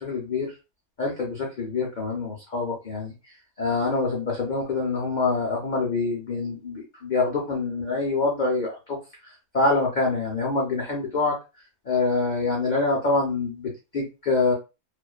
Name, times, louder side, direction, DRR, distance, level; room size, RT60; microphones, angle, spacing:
voice 1, 0.0-0.5 1.0-3.1 3.6-9.0 9.5-11.3 11.9-14.5, left 3 dB, 75° left, -2 dB, 0.4 m, -25 dB
2.4 x 2.2 x 2.3 m, 0.28 s
omnidirectional pair, 1.5 m